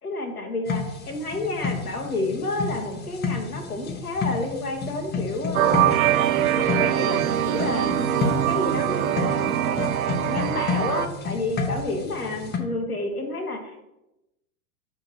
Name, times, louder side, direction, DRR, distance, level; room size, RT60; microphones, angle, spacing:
voice 1, 0.0-6.0 6.6-9.9 10.2-13.8, left 2 dB, 90° left, 2 dB, 1.3 m, -30 dB
sound 1, 0.7-12.6, left 4 dB, 25° left, 0.7 m, -31 dB
sound 2, 5.5-11.1, right 11 dB, 70° right, 0.5 m, -23 dB
5.6 x 3.5 x 5.8 m, 0.93 s
figure-of-eight pair, 95°, 43 cm